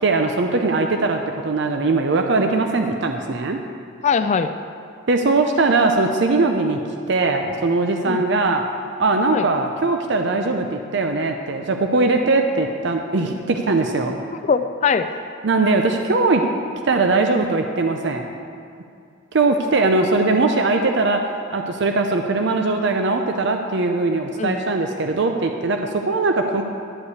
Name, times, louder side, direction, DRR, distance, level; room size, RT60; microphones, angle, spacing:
voice 1, 0.0-3.6 5.1-6.8 7.1-8.6 9.0-14.2 15.4-16.4 16.8-18.4 19.3-26.6, right 3 dB, 60° right, 4 dB, 0.6 m, -20 dB
voice 2, 4.0-4.5 8.1-8.2 9.3-9.5 14.4-15.1 24.4-24.6, left 5 dB, 35° left, 10 dB, 0.3 m, -21 dB
11.5 x 5.4 x 8.2 m, 2.4 s
head